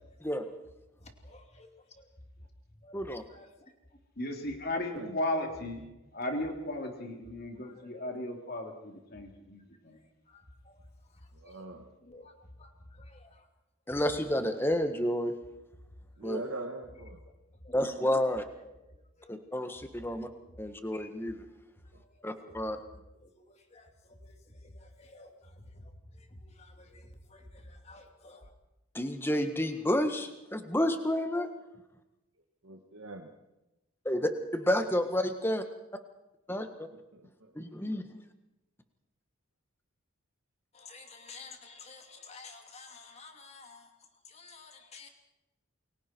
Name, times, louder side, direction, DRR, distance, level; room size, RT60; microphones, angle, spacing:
voice 1, 1.0-2.1 2.4-3.7 7.1-7.9 9.9-11.7 12.0-13.5 16.1-16.3 17.2-17.4 17.6-17.8 18.6-20.6 21.9-22.3 23.2-28.5 40.7-45.1, left 3 dB, 30° left, 2.7 m, -53 dB
voice 2, 4.2-5.8 6.1-10.0, left 1 dB, 45° left, 3.4 m, -35 dB
voice 3, 4.7-5.2 11.3-12.0 16.2-17.2 21.9-22.0 22.7-23.0 32.6-33.3 36.9-37.6, right 2 dB, 65° right, 1.8 m, -43 dB
voice 4, 13.9-15.3 16.2-16.4 17.7-18.4 19.3-20.3 20.6-21.4 22.2-22.8 28.9-31.5 34.0-35.6 36.5-36.7 37.5-38.0, left 1 dB, 10° left, 1.6 m, -30 dB
29.0 x 22.5 x 4.6 m
head